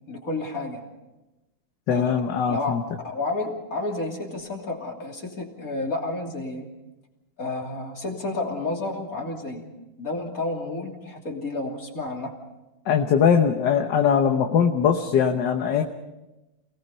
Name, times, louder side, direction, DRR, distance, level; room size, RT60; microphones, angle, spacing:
voice 1, 0.1-0.8 1.9-2.2 2.5-2.7 3.0-6.7 7.4-9.6 10.0-12.4, left 2 dB, 45° left, 1 dB, 3.4 m, -30 dB
voice 2, 1.9-2.8 12.9-15.8, left 7 dB, 65° left, 5 dB, 1.6 m, -21 dB
28.5 x 18.5 x 5.5 m, 1.0 s
omnidirectional pair, 2.1 m